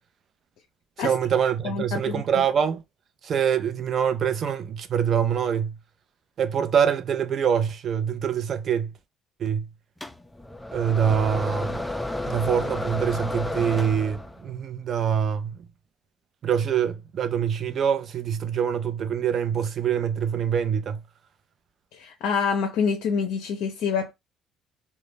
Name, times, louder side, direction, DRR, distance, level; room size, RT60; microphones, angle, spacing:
voice 1, 1.0-2.8 3.2-5.8 6.4-8.9 9.4-9.7 10.7-11.8 12.2-15.7 16.4-21.0, right 8 dB, 55° right, 0.5 m, -25 dB
voice 2, 1.6-2.2 21.9-24.1, left 6 dB, 75° left, 0.4 m, -26 dB
sound 1, 10.0-14.5, left 1 dB, 10° left, 0.3 m, -31 dB
2.1 x 2.0 x 3.2 m
supercardioid pair, 75°, 0 cm